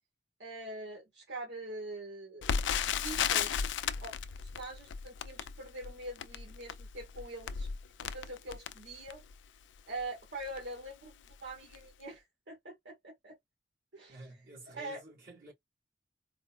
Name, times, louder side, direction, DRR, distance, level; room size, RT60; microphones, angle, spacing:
voice 1, 0.4-2.6 3.0-3.6 4.0-7.7 8.0-9.2 9.9-13.4 13.9-14.2 14.7-15.0, right 2 dB, 70° right, 1.6 m, -44 dB
Crackle, 2.4-9.4 10.0-10.1 10.4-10.6 11.2-11.5 11.7-11.8, left 7 dB, 75° left, 0.4 m, -35 dB
voice 2, 14.1-15.5, right 2 dB, 55° right, 2.3 m, -51 dB
4.3 x 2.3 x 2.3 m
head